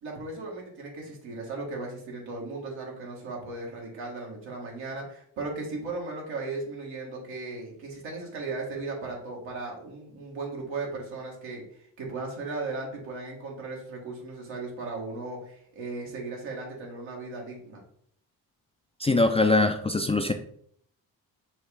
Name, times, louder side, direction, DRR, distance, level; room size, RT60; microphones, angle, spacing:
voice 1, 0.0-17.8, right 3 dB, 80° right, -1 dB, 1.5 m, -36 dB
voice 2, 19.0-20.3, left 2 dB, 15° left, 6 dB, 0.3 m, -22 dB
6.1 x 2.4 x 3.3 m, 0.63 s
supercardioid pair, 50°, 46 cm